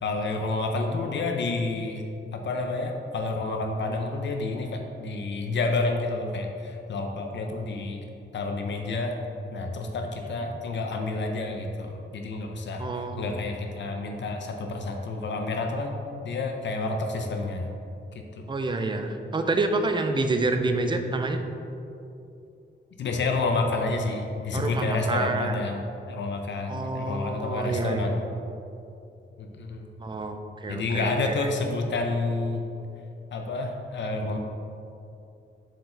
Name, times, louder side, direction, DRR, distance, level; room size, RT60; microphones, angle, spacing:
voice 1, 0.0-2.0 2.3-8.0 8.3-9.1 9.5-12.8 13.2-16.0 16.2-17.7 18.4-18.5 23.0-28.2 29.4-29.9 30.7-32.6 33.3-34.4, left 3 dB, 70° left, 3 dB, 0.6 m, -29 dB
voice 2, 12.8-13.3 18.5-21.4 24.5-25.6 26.7-28.1 30.0-31.5, right 2 dB, 25° right, 6 dB, 0.4 m, -28 dB
7.4 x 4.8 x 3.3 m, 2.7 s
wide cardioid pair, 160°, 19 cm